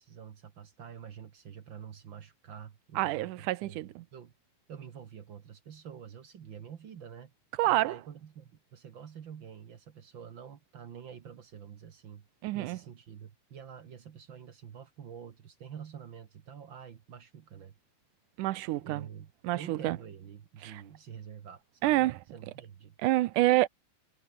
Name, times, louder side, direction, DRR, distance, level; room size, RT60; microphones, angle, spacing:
voice 1, 0.0-4.3 4.7-7.3 7.6-12.2 12.5-17.7 18.8-22.9, right 8 dB, 55° right, 1.3 m, -47 dB
voice 2, 3.0-4.0 7.6-8.0 12.4-12.8 18.4-19.1 19.4-20.0 20.6-20.8 21.8-22.2 23.0-23.7, right 16 dB, 75° right, 2.0 m, -27 dB
omnidirectional pair, 4.1 m